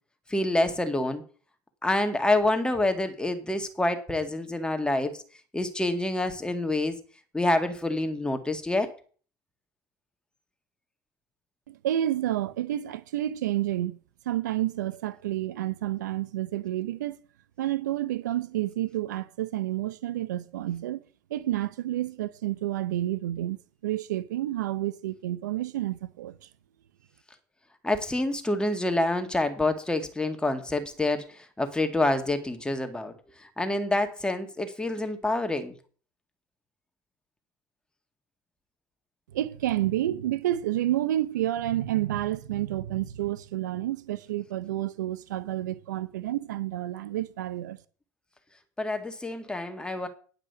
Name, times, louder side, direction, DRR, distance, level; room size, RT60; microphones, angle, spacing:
voice 1, 0.3-1.2 1.8-5.1 5.5-7.0 7.3-8.9 27.8-31.2 31.6-33.1 33.6-35.7 48.8-50.1, left 2 dB, 10° left, 2.0 m, -27 dB
voice 2, 11.7-14.0 14.3-17.2 17.6-26.5 39.3-47.8, right 13 dB, 90° right, 0.6 m, -30 dB
10.5 x 5.8 x 6.9 m
hypercardioid pair, 85°, 9 cm